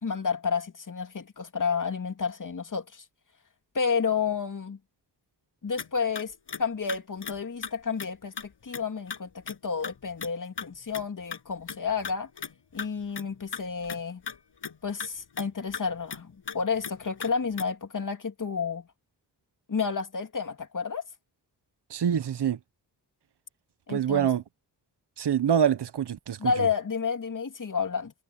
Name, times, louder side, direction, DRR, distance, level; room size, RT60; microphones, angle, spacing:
voice 1, 0.0-3.0 3.7-4.8 5.6-12.3 12.7-14.2 14.8-18.9 19.7-21.0 23.9-24.3 26.4-28.1, left 5 dB, 50° left, 2.7 m, -30 dB
sound 1, 5.7-5.9 6.2-6.6 6.9-7.4 7.6-7.7 8.0-8.1 8.4-8.5 8.7-9.2 9.5-9.6 9.8-9.9 10.2-10.3 10.6-10.7 10.9-11.1 11.3-11.4 11.7-12.5 12.8-12.9 13.2-13.3 13.5-14.4 14.6-14.7 15.0-15.1 15.4-15.5 15.7-16.2 16.5-16.6 16.8-17.6, left 6 dB, 75° left, 7.6 m, -37 dB
voice 2, 21.9-22.6 23.9-24.4 25.2-26.5, right 9 dB, 75° right, 1.1 m, -25 dB
wide cardioid pair, 145°, 41 cm